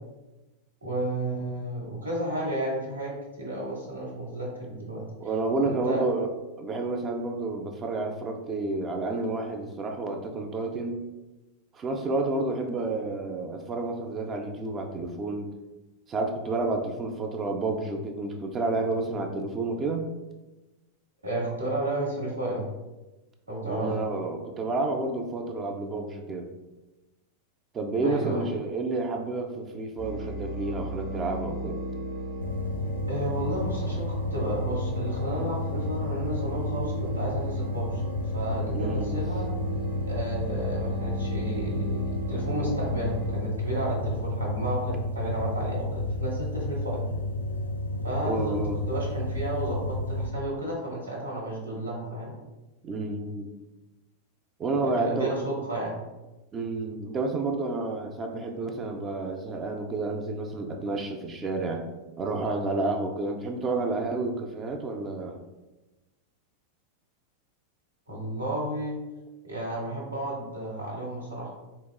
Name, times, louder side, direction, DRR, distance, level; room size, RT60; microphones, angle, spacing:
voice 1, 0.8-5.0 5.6-6.1 21.2-22.6 23.5-23.9 28.0-28.5 33.1-38.0 38.3-39.5 40.1-47.0 48.0-48.6 48.9-52.4 54.8-55.9 68.1-69.0 69.4-71.5, right 1 dB, 75° right, -3 dB, 0.9 m, -32 dB
voice 2, 5.2-6.3 6.6-11.0 11.7-15.5 16.1-20.0 23.6-26.5 27.7-31.8 38.7-39.2 48.2-48.9 52.8-53.5 54.6-55.4 56.5-61.8 62.2-65.4, right 3 dB, 25° right, 3 dB, 0.3 m, -30 dB
sound 1, 30.0-43.4, equal, 45° right, 0.9 m, -36 dB
sound 2, 32.4-50.3, left 1 dB, 75° left, 0.3 m, -31 dB
3.9 x 2.3 x 2.3 m, 1.1 s
figure-of-eight pair, 90°, 0 cm